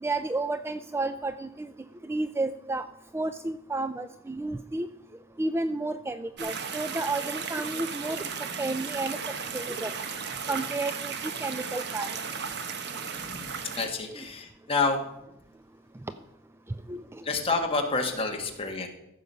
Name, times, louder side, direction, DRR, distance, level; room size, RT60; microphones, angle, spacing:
voice 1, 0.0-1.7 2.0-2.8 3.1-4.9 5.4-8.3 8.6-9.2 9.5-9.9 10.5-11.1 11.4-12.1 14.1-14.2 16.9-17.0, right 2 dB, 10° right, 11 dB, 0.3 m, -31 dB
sound 1, 6.4-13.9, right 6 dB, 55° right, 1.0 m, -35 dB
voice 2, 13.2-15.0 17.2-18.9, left 3 dB, 25° left, 3 dB, 1.6 m, -29 dB
15.0 x 6.6 x 5.5 m, 0.86 s
head